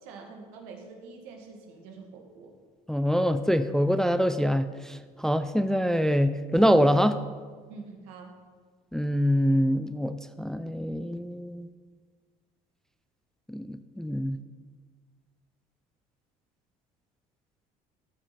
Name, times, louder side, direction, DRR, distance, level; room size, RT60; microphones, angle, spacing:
voice 1, 0.0-2.5 7.7-8.3, right 4 dB, 80° right, 2 dB, 1.6 m, -45 dB
voice 2, 2.9-7.2 8.9-11.7 13.5-14.4, equal, 5° left, 11 dB, 0.4 m, -25 dB
14.0 x 5.0 x 4.2 m, 1.6 s
supercardioid pair, 75°, 19 cm